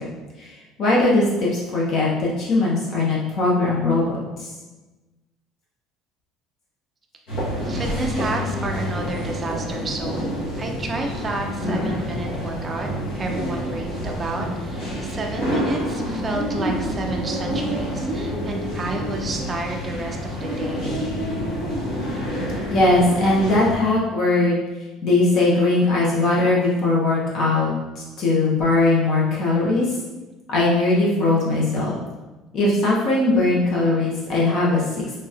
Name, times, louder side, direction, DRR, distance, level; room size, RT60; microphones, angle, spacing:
voice 1, 0.8-4.5 22.7-24.6 25.0-29.9 30.5-32.0 32.5-34.8, left 2 dB, 40° left, -5 dB, 0.6 m, -20 dB
sound 1, 7.3-23.7, equal, 75° left, 1.0 m, -27 dB
voice 2, 7.3-12.9 13.1-20.9, right 2 dB, 20° right, 1 dB, 0.4 m, -31 dB
3.0 x 2.8 x 2.4 m, 1.1 s
cardioid pair, 165°, 0 cm